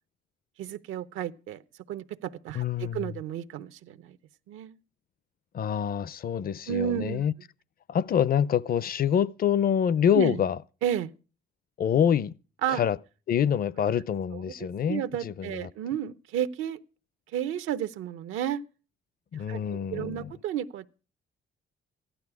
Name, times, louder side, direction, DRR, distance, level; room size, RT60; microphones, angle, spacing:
voice 1, 0.6-1.6 1.9-4.2 4.5-4.8 6.7-7.3 10.1-10.4 10.8-11.1 12.6-12.8 14.9-16.8 17.3-18.6 19.3-21.0, right 10 dB, 90° right, 0.8 m, -32 dB
voice 2, 2.5-3.1 5.5-7.3 7.9-10.6 11.8-12.3 12.7-13.0 13.3-15.7 19.3-20.3, left 8 dB, 50° left, 0.6 m, -26 dB
15.0 x 11.5 x 4.7 m
cardioid pair, 90°, 20 cm